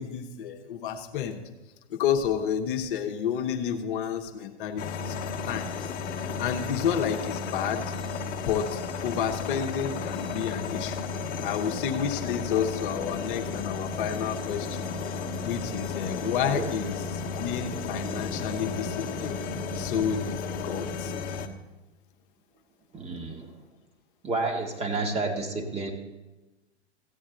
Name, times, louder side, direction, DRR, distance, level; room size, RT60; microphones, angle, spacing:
voice 1, 0.0-1.4 1.9-5.9 6.2-7.8 8.4-11.0 11.4-14.9 15.4-19.4 19.7-21.1, left 8 dB, 50° left, 3 dB, 1.0 m, -30 dB
sound 1, 4.8-21.5, left 4 dB, 25° left, 1.2 m, -33 dB
voice 2, 16.2-16.7 22.9-23.5 24.2-25.9, right 3 dB, 20° right, 3 dB, 1.5 m, -31 dB
15.0 x 8.5 x 3.8 m, 1.1 s
figure-of-eight pair, 110°, 34 cm